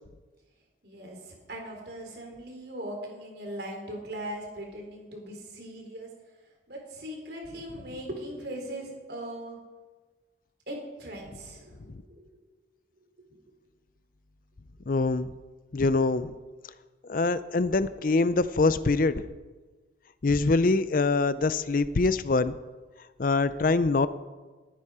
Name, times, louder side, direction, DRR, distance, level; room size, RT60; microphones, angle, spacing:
voice 1, 0.8-6.1 6.7-9.6 10.7-12.2, right 1 dB, 55° right, 1 dB, 3.6 m, -39 dB
voice 2, 14.9-15.3 15.7-16.3 17.1-19.3 20.2-22.6 23.2-24.1, left 3 dB, 45° left, 14 dB, 0.5 m, -24 dB
20.5 x 10.0 x 4.9 m, 1.3 s
head